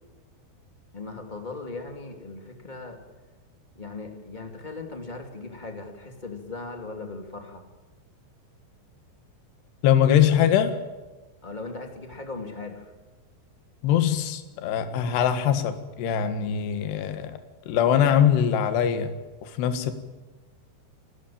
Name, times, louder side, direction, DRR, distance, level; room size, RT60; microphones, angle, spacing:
voice 1, 0.9-3.0 3.7-7.6 11.4-12.9, left 3 dB, 20° left, 4 dB, 1.3 m, -38 dB
voice 2, 9.8-10.8 13.8-17.4 17.7-19.9, left 9 dB, 65° left, 9 dB, 3.5 m, -22 dB
29.0 x 12.5 x 8.8 m, 1.2 s
omnidirectional pair, 5.8 m